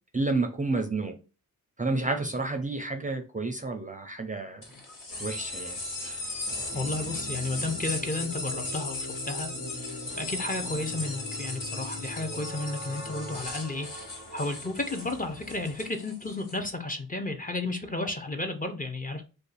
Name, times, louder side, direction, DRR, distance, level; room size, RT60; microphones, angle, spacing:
voice 1, 0.1-1.2 1.8-4.6 5.2-6.2, right 3 dB, 20° right, 4 dB, 0.5 m, -30 dB
sound 1, 4.6-16.6, left 2 dB, 60° left, 1.3 m, -37 dB
sound 2, 5.1-15.9, left 1 dB, 80° left, 1.5 m, -42 dB
voice 2, 6.7-13.9 14.3-19.2, left 2 dB, 20° left, 5 dB, 0.6 m, -33 dB
2.6 x 2.5 x 3.9 m, 0.33 s
cardioid pair, 80°, 37 cm